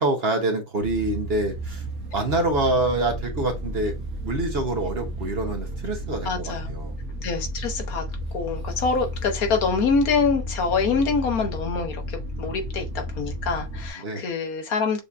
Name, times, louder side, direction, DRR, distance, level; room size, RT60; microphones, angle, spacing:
voice 1, 0.0-1.8 2.1-3.9 4.2-6.9 14.0-14.2, right 2 dB, 50° right, 1.0 m, -26 dB
sound 1, 0.8-13.9, equal, 70° right, 1.5 m, -33 dB
voice 2, 6.2-6.7 7.2-8.0 8.3-15.0, left 4 dB, 70° left, 1.4 m, -25 dB
6.6 x 2.7 x 2.4 m
omnidirectional pair, 1.6 m